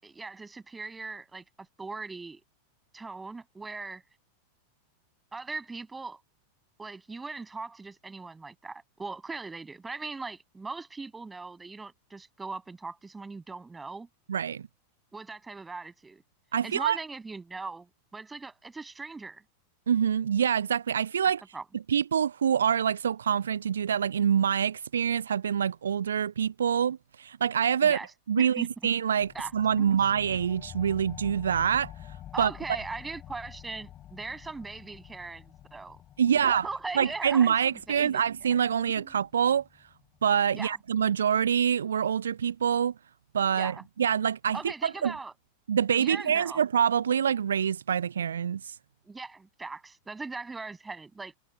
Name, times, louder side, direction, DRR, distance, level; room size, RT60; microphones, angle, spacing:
voice 1, 0.0-2.4 2.9-4.0 5.3-6.2 6.8-14.1 15.1-16.2 16.6-19.4 21.5-21.6 27.8-28.1 28.4-28.7 29.3-29.5 29.8-30.0 32.3-36.0 36.3-38.2 39.0-39.1 40.5-40.8 43.5-43.9 44.5-45.3 46.0-46.6 49.0-51.3, right 3 dB, 10° right, 7.5 m, -40 dB
voice 2, 14.3-14.7 16.5-17.0 19.9-21.4 21.9-28.0 28.3-31.9 32.4-32.5 36.2-36.7 36.9-39.6 40.2-42.9 43.3-45.1 45.7-48.8, right 8 dB, 65° right, 0.6 m, -26 dB
sound 1, 29.2-40.3, left 11 dB, 30° left, 7.1 m, -48 dB
figure-of-eight pair, 90°, 0 cm